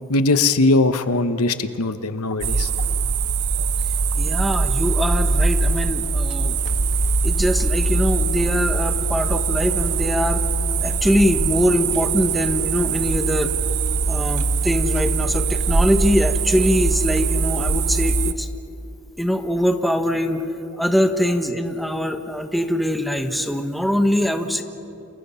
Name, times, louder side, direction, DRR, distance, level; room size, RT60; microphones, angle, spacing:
voice 1, 0.1-2.7, left 2 dB, 80° left, 10 dB, 1.1 m, -20 dB
sound 1, 2.4-18.3, right 4 dB, 90° right, 1.1 m, -22 dB
voice 2, 4.1-6.5 7.2-10.4 10.8-13.5 14.1-18.5 19.2-20.4 20.8-24.6, equal, ahead, 6 dB, 1.3 m, -22 dB
30.0 x 28.5 x 5.7 m, 2.7 s
head